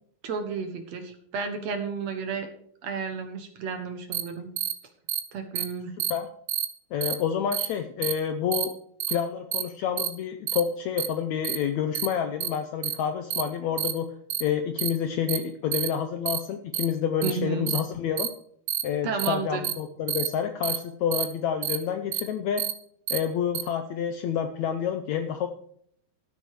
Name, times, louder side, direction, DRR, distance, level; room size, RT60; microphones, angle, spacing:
voice 1, 0.2-2.5 2.8-4.5 5.3-5.9 17.2-17.7 19.0-19.7, right 5 dB, 60° right, 6 dB, 2.1 m, -32 dB
sound 1, 4.1-4.2 4.6-4.7 5.1-5.2 5.6-5.7 6.0-6.1 6.5-6.7 7.0-7.1 7.5-7.7 8.0-8.1 8.5-8.7 9.0-9.1 9.5-9.6 10.0-10.1 10.5-10.6 11.0-11.1 11.4-11.6 11.9-12.1 12.4-12.5 12.8-12.9 13.3-13.4 13.8-13.9 14.3-14.4 14.8-14.9 15.3-15.4 15.7-15.9 16.3-16.4 16.7-16.9 17.2-17.3 17.7-17.8 18.2-18.3 18.7-18.8 19.2-19.3 19.6-19.7 20.1-20.3 20.6-20.8 21.1-21.2 21.6-21.8 22.1-22.2 22.6-22.7 23.1-23.2 23.5-23.6, right 12 dB, 75° right, 2.7 m, -28 dB
voice 2, 6.9-8.7 9.1-14.1 14.4-18.3 18.8-22.6 23.1-25.5, left 8 dB, 80° left, 8 dB, 1.6 m, -28 dB
13.5 x 7.9 x 4.8 m, 0.65 s
omnidirectional pair, 4.1 m